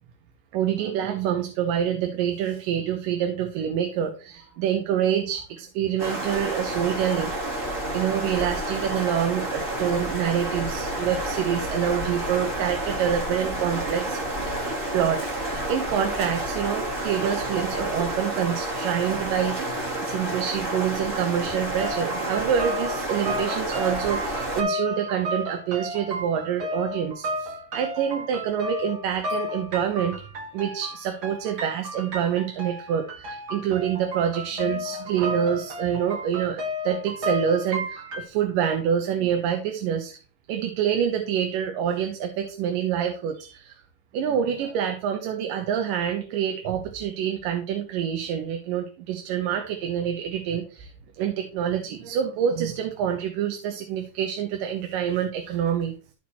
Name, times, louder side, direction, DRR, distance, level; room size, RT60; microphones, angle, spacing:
voice 1, 0.5-14.2 14.9-30.2 30.5-40.2 40.5-43.8 44.1-50.9 51.2-55.9, right 9 dB, 85° right, 5 dB, 2.7 m, -27 dB
sound 1, 6.0-24.6, right 1 dB, 20° right, 2.0 m, -30 dB
sound 2, 21.8-38.2, left 1 dB, 40° right, 2.3 m, -33 dB
14.0 x 4.7 x 4.1 m, 0.36 s
omnidirectional pair, 3.7 m